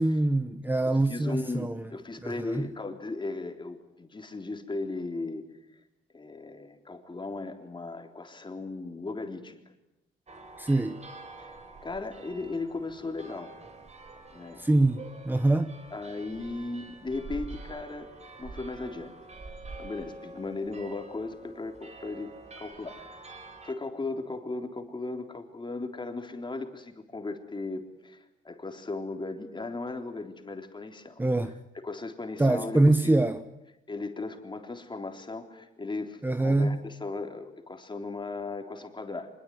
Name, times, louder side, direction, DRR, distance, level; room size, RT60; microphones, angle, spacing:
voice 1, 0.0-1.9 2.2-2.7 10.6-11.0 14.6-15.7 31.2-31.6 32.4-33.4 36.2-36.8, right 2 dB, 10° right, 10 dB, 1.0 m, -24 dB
voice 2, 0.8-5.4 6.1-9.6 11.4-13.5 14.3-14.6 15.9-18.1 18.4-19.2 19.8-23.4 23.6-31.2 31.8-33.3 33.9-39.3, left 3 dB, 25° left, 5 dB, 3.7 m, -37 dB
sound 1, 10.3-23.7, right 3 dB, 35° right, 4.4 m, -46 dB
24.5 x 22.0 x 9.5 m, 0.92 s
cardioid pair, 90°, 20 cm